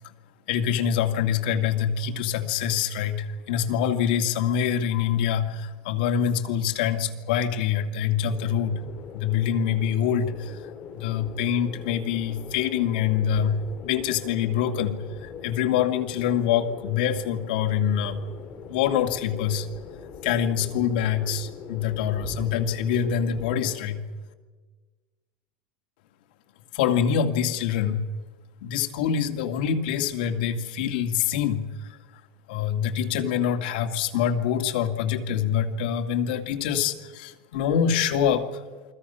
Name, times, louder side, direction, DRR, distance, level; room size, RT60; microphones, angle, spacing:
voice 1, 0.5-8.8 9.1-10.6 10.9-15.0 15.2-18.2 18.7-19.7 20.2-24.0 26.7-28.0 28.6-31.7 32.5-38.5, left 8 dB, 80° left, 5 dB, 2.3 m, -25 dB
sound 1, 8.2-23.9, left 6 dB, 35° left, 4.0 m, -41 dB
28.5 x 22.5 x 5.8 m, 1.4 s
supercardioid pair, 150°, 5 cm